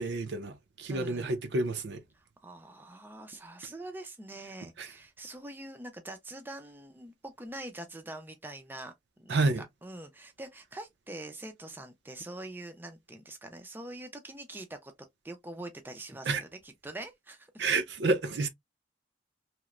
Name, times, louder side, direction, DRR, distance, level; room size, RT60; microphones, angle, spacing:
voice 1, 0.0-2.0 4.8-4.9 9.3-9.6 16.3-16.4 17.6-18.5, right 3 dB, 70° right, 0.5 m, -29 dB
voice 2, 0.9-1.4 2.4-14.9 15.2-17.6, right 1 dB, 10° right, 0.4 m, -44 dB
3.0 x 2.0 x 2.3 m
head